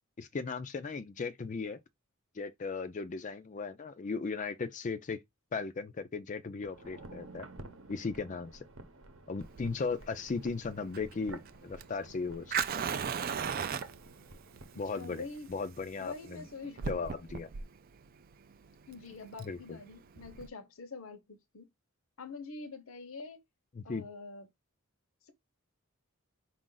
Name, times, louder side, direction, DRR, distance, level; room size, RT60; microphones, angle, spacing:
voice 1, 0.2-1.8 2.4-5.2 5.5-7.5 7.9-8.6 9.3-12.8 14.8-15.2 15.5-16.4 16.9-17.5 19.4-19.8 23.8-24.1, left 4 dB, 35° left, 0.4 m, -37 dB
sound 1, 6.6-15.6 15.9-16.0, right 2 dB, 60° right, 0.9 m, -51 dB
Fire, 9.4-20.5, right 7 dB, 40° right, 0.3 m, -38 dB
voice 2, 14.9-15.5 16.0-17.0 18.9-21.7 22.2-23.4 23.8-24.5 25.3-25.4, left 4 dB, 65° left, 0.8 m, -45 dB
4.9 x 2.5 x 3.8 m
head